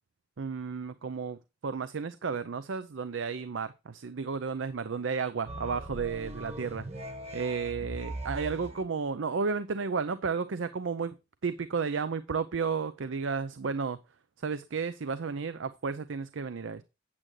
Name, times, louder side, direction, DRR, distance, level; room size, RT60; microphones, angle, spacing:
voice 1, 0.4-6.9 7.3-11.2 11.4-14.0 14.4-16.8, right 5 dB, 80° right, 13 dB, 0.6 m, -33 dB
sound 1, 5.5-8.8, right 1 dB, 35° right, 1.4 m, -40 dB
8.8 x 8.7 x 3.2 m, 0.26 s
head